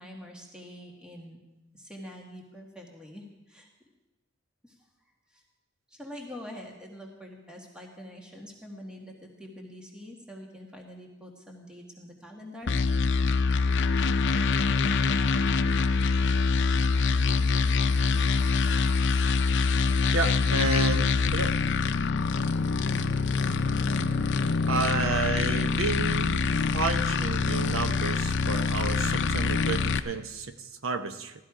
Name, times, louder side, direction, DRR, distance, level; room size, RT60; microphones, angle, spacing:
voice 1, 0.0-1.4 1.7-3.7 4.6-4.7 5.3-5.4 5.9-12.8, equal, 5° right, 0 dB, 1.7 m, -45 dB
sound 1, 12.7-30.0, left 4 dB, 60° left, 0.6 m, -25 dB
voice 2, 20.1-21.6 24.7-26.5 26.7-31.3, right 3 dB, 90° right, 9 dB, 0.9 m, -31 dB
16.0 x 13.0 x 4.9 m, 1.0 s
head